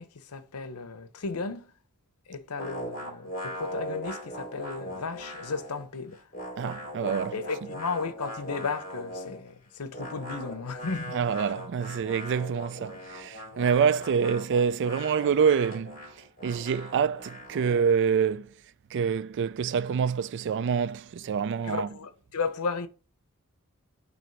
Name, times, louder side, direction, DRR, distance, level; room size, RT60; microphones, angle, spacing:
voice 1, 0.0-1.7 2.3-6.2 7.3-11.5 21.6-22.9, left 4 dB, 90° left, 0.8 m, -34 dB
sound 1, 2.6-5.9 6.1-9.4 9.9-17.9, equal, 40° left, 2.8 m, -40 dB
voice 2, 6.6-7.4 11.1-16.0 16.4-18.5 18.9-21.9, right 6 dB, 55° right, 0.3 m, -26 dB
6.1 x 3.0 x 5.7 m
head